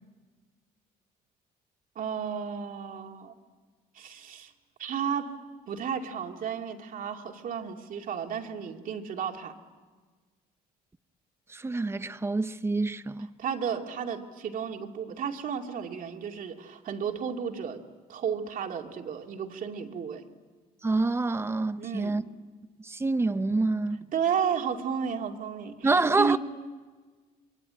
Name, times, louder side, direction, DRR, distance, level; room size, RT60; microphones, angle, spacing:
voice 1, 2.0-3.3 3.9-4.5 4.8-9.5 13.4-17.8 18.1-20.3 21.8-22.2 24.1-26.4, right 7 dB, 55° right, 2.5 m, -33 dB
voice 2, 11.5-13.3 20.8-22.2 22.8-24.0 25.8-26.4, right 3 dB, 15° right, 0.9 m, -27 dB
27.5 x 23.5 x 8.9 m
cardioid pair, 110°, 17 cm